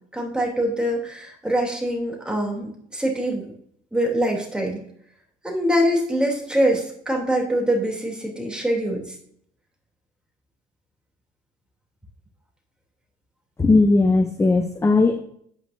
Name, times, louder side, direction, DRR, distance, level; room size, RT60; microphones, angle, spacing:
voice 1, 0.1-3.5 3.9-4.8 5.4-9.0, equal, 5° right, -1 dB, 3.1 m, -24 dB
voice 2, 13.6-15.2, left 3 dB, 15° left, 7 dB, 0.8 m, -18 dB
9.2 x 9.0 x 2.7 m, 0.67 s
cardioid pair, 110°, 17 cm